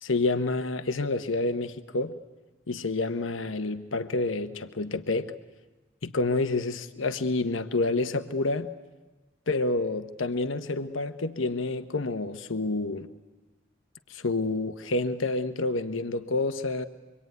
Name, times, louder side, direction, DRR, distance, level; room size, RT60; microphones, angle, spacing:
voice 1, 0.0-2.2 2.7-5.3 6.0-8.7 9.5-13.1 14.1-16.9, left 2 dB, 80° left, 9 dB, 1.1 m, -28 dB
25.5 x 23.5 x 9.4 m, 1.2 s
head